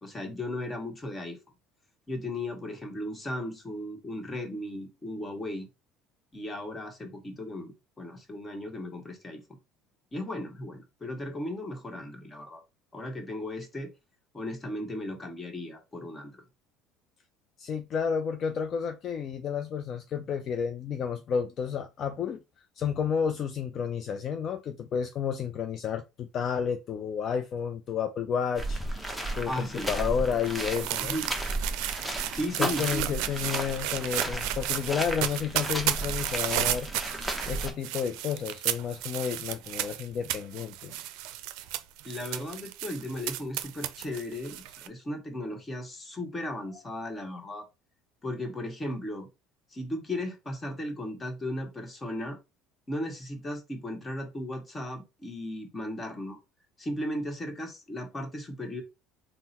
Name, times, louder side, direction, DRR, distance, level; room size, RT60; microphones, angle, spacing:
voice 1, 0.0-1.4 2.1-5.7 6.3-7.7 8.0-9.4 10.1-12.6 12.9-13.9 14.3-16.4 29.5-29.9 31.0-31.3 32.3-33.1 42.0-47.6 48.2-49.3 49.7-52.4 52.9-56.4 56.8-58.8, left 1 dB, 20° left, 1.3 m, -36 dB
voice 2, 17.6-22.4 22.8-28.8 29.4-31.2 32.6-36.9 37.5-41.0, left 7 dB, 45° left, 0.4 m, -31 dB
sound 1, 28.6-37.7, right 1 dB, ahead, 0.9 m, -34 dB
sound 2, 29.8-44.9, right 13 dB, 75° right, 0.4 m, -33 dB
3.7 x 2.1 x 4.2 m
supercardioid pair, 110°, 0 cm